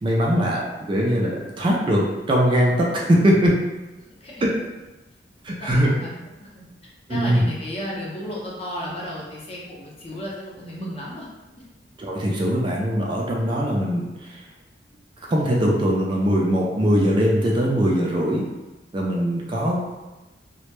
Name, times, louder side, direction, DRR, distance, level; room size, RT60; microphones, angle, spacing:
voice 1, 0.0-3.5 4.4-4.5 5.4-5.9 7.1-7.4 12.0-14.4 15.3-18.4 18.9-19.9, equal, 25° right, -3 dB, 0.3 m, -21 dB
voice 2, 5.6-6.6 7.1-11.3, left 1 dB, 35° left, -5 dB, 0.6 m, -33 dB
2.1 x 2.0 x 3.0 m, 1.1 s
head